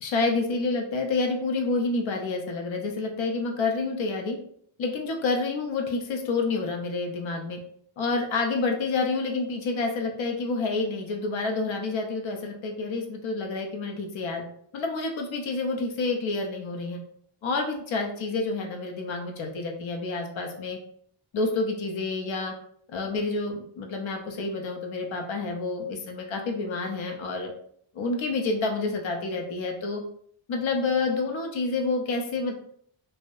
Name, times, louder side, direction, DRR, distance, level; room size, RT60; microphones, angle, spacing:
voice 1, 0.0-4.4 4.8-7.6 8.0-14.4 14.7-17.0 17.4-20.8 21.3-22.5 22.9-27.5 27.9-30.0 30.5-32.5, left 3 dB, 65° left, 3 dB, 0.6 m, -28 dB
2.6 x 2.1 x 2.3 m, 0.63 s
wide cardioid pair, 85°, 50 cm